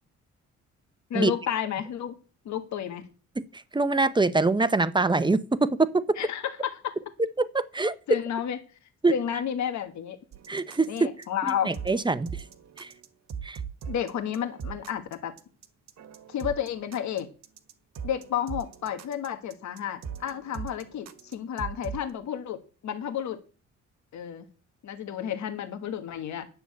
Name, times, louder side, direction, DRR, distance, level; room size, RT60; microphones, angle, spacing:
voice 1, 1.1-2.1 2.4-3.0 6.2-6.9 8.1-8.6 9.1-10.2 10.9-11.7 13.9-15.3 16.3-17.3 18.0-23.4 24.1-24.5 24.8-26.5, left 9 dB, 70° left, 1.6 m, -31 dB
voice 2, 3.4-6.0 7.4-7.9 9.0-9.1 10.5-11.1 11.6-12.3 12.8-12.9 13.4-13.6, right 3 dB, 15° right, 0.9 m, -24 dB
sound 1, 10.3-22.1, right 7 dB, 60° right, 1.6 m, -40 dB
9.8 x 6.9 x 8.5 m
cardioid pair, 90°, 30 cm